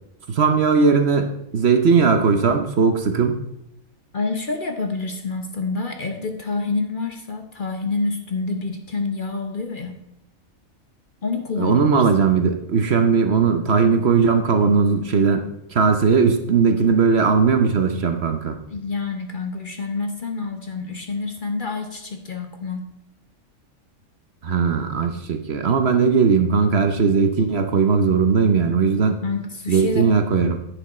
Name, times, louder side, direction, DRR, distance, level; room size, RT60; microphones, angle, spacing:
voice 1, 0.3-3.4 11.6-15.4 15.7-18.6 24.4-29.2 29.7-30.6, right 5 dB, 55° right, 6 dB, 1.1 m, -18 dB
voice 2, 4.1-10.0 11.2-12.0 18.7-22.9 29.2-30.1, left 3 dB, 40° left, 5 dB, 1.1 m, -27 dB
10.0 x 9.0 x 4.3 m, 0.82 s
omnidirectional pair, 1.4 m